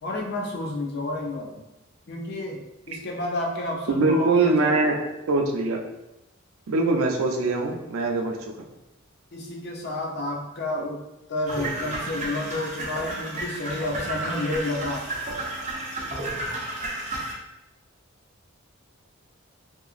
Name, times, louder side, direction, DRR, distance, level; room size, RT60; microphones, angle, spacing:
voice 1, 0.0-1.5 2.1-2.6 2.9-4.9 9.3-11.0 11.3-15.0, left 2 dB, 55° left, 0 dB, 0.5 m, -30 dB
voice 2, 3.9-5.0 5.3-5.8 6.7-8.5, right 3 dB, 85° right, 2 dB, 0.4 m, -22 dB
sound 1, 11.5-17.3, right 2 dB, 35° right, 0.7 m, -32 dB
2.9 x 2.3 x 2.4 m, 0.93 s
head